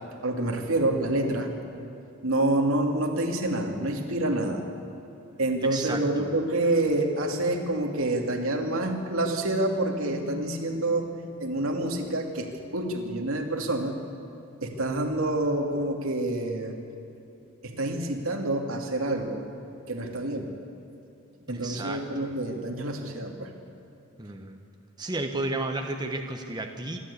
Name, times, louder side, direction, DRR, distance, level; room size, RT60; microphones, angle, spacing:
voice 1, 0.2-1.5 2.2-4.6 5.4-11.1 11.4-13.9 14.6-16.8 17.6-19.5 19.9-20.5 21.5-23.5, right 1 dB, 80° right, 2 dB, 2.5 m, -27 dB
voice 2, 5.7-6.3 21.5-22.3 24.2-24.6 25.0-27.0, right 2 dB, 20° right, 4 dB, 1.1 m, -33 dB
26.5 x 12.5 x 8.4 m, 2.8 s
head